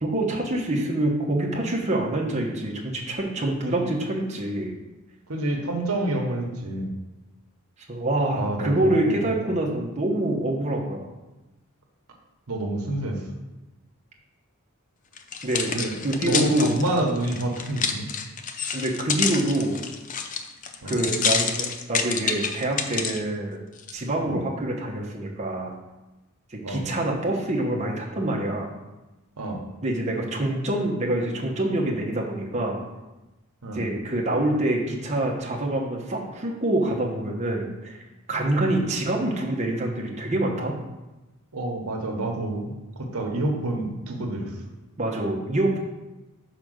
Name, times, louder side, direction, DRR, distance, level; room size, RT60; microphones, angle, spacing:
voice 1, 0.0-4.7 7.9-11.1 15.4-16.8 18.7-19.8 20.8-23.6 23.9-25.7 26.5-28.7 29.8-32.8 33.7-38.0 38.3-40.7 45.0-45.8, right 1 dB, 30° right, -2 dB, 1.1 m, -26 dB
voice 2, 5.3-6.9 8.3-9.4 12.5-13.2 15.7-15.9 16.2-18.1 20.8-21.0 24.2-24.4 26.6-26.8 29.4-29.6 33.6-33.8 38.6-38.9 41.5-42.7 43.0-44.5, right 1 dB, 80° right, 2 dB, 1.2 m, -28 dB
sound 1, 15.2-23.2 23.8-23.9, left 6 dB, 35° left, 0.5 m, -28 dB
5.2 x 4.9 x 6.4 m, 1.1 s
head